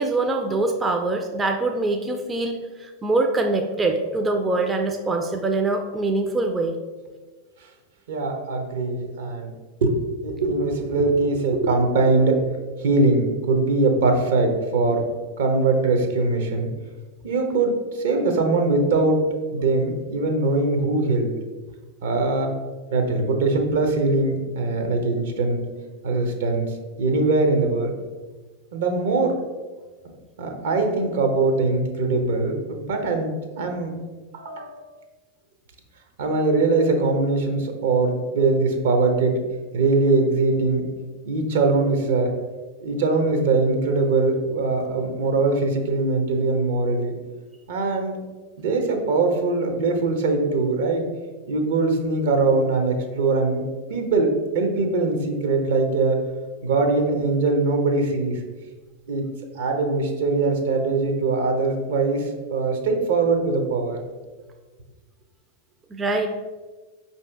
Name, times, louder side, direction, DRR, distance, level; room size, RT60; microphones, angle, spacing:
voice 1, 0.0-6.8 65.9-66.3, right 2 dB, 20° right, 4 dB, 0.4 m, -24 dB
voice 2, 8.1-9.5 9.8-9.9 10.2-12.4 12.8-15.0 15.4-16.7 17.2-19.2 19.5-21.3 22.0-22.5 22.9-25.6 26.0-27.9 28.7-29.4 30.4-33.3 33.6-33.9 34.3-34.8 36.2-39.4 39.7-40.8 41.3-42.3 42.8-47.1 47.7-48.2 48.6-51.0 51.5-53.6 53.9-54.3 54.5-56.2 56.6-58.4 59.1-59.2 59.5-64.0, right 3 dB, 65° right, 4 dB, 0.7 m, -22 dB
4.9 x 2.7 x 3.4 m, 1.3 s
figure-of-eight pair, 90°, 0 cm